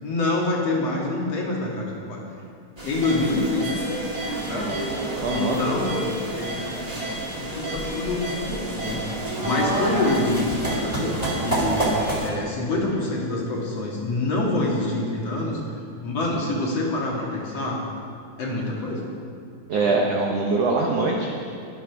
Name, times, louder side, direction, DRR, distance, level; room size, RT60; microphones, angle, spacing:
voice 1, 0.0-2.2 2.8-3.7 4.4-4.7 5.3-6.0 6.3-7.0 7.4-9.0 9.4-11.1 11.4-15.6 16.0-17.8 18.4-19.1 19.8-20.0, left 2 dB, 50° left, -3 dB, 2.7 m, -26 dB
sound 1, 2.8-12.3, right 1 dB, 20° right, 1.0 m, -28 dB
voice 2, 5.2-5.6 19.7-21.5, right 3 dB, 85° right, 0 dB, 1.4 m, -23 dB
21.5 x 7.5 x 5.9 m, 2.5 s
omnidirectional pair, 4.4 m